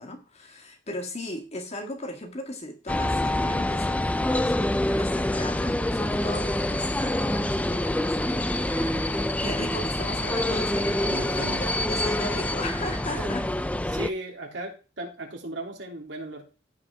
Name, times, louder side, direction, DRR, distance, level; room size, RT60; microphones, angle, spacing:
voice 1, 0.0-13.4, left 1 dB, 35° left, 5 dB, 1.9 m, -37 dB
sound 1, 2.9-14.1, left 1 dB, 10° left, 0.4 m, -26 dB
voice 2, 11.1-11.6 13.1-13.3 13.9-16.4, right 1 dB, 75° right, 0 dB, 3.2 m, -36 dB
15.0 x 5.1 x 3.6 m, 0.33 s
head